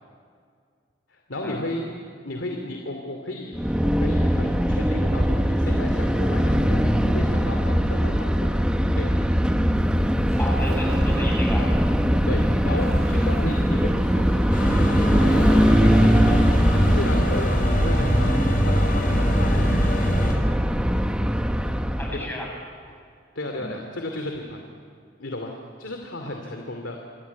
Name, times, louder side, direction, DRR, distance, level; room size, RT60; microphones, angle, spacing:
voice 1, 1.1-1.8 2.2-8.5 8.9-9.2 12.2-18.4 18.6-19.6 22.1-22.3 23.3-24.6 25.2-25.5 25.8-27.1, left 1 dB, 75° left, 3 dB, 2.7 m, -33 dB
sound 1, 3.5-22.3, equal, 5° right, 1.0 m, -21 dB
Laughter, 9.7-20.3, right 1 dB, 35° right, 6.8 m, -41 dB
voice 2, 10.4-11.7 22.0-22.5 23.6-23.7, left 1 dB, 10° left, -1 dB, 6.8 m, -32 dB
sound 2, 14.5-20.3, equal, 45° left, 4.3 m, -25 dB
27.5 x 23.0 x 8.4 m, 2.2 s
head